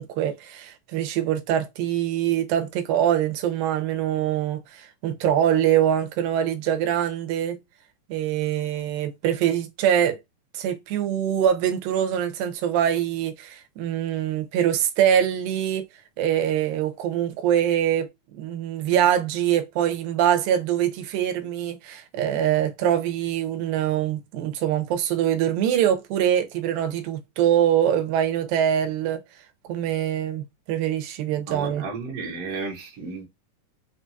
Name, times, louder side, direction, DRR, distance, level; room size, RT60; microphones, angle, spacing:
voice 1, 0.0-7.6 8.1-10.2 10.5-15.9 16.2-18.1 18.4-29.2 29.6-31.9, right 10 dB, 85° right, 2.5 m, -24 dB
voice 2, 31.5-33.2, right 4 dB, 65° right, 1.6 m, -33 dB
5.8 x 2.3 x 2.6 m
omnidirectional pair, 4.0 m